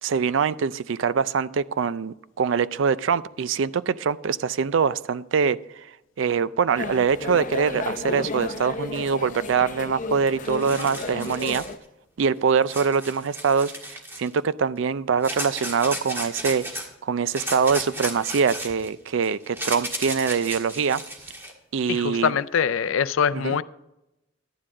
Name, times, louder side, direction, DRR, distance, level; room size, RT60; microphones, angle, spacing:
voice 1, 0.0-5.6 6.2-11.6 12.2-16.6 17.0-21.0 21.7-22.3 23.3-23.6, right 6 dB, 70° right, 0.4 m, -24 dB
sound 1, 6.7-11.8, left 3 dB, 40° left, 0.7 m, -33 dB
sound 2, 10.1-10.2 10.4-11.7 12.7-14.3 15.2-16.9 17.3-21.5, right 1 dB, 10° right, 1.5 m, -34 dB
voice 2, 21.9-23.6, left 7 dB, 90° left, 0.4 m, -23 dB
11.5 x 9.8 x 3.7 m
head